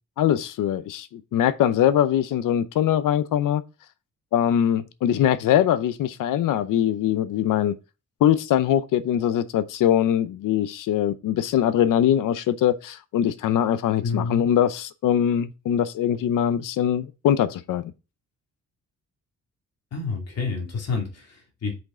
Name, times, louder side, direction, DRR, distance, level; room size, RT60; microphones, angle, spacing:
voice 1, 0.2-3.6 4.3-7.8 8.2-17.9, left 10 dB, 90° left, 0.7 m, -22 dB
voice 2, 14.0-14.5 19.9-21.7, left 4 dB, 55° left, 2.3 m, -29 dB
6.1 x 5.3 x 3.8 m
wide cardioid pair, 155°, 31 cm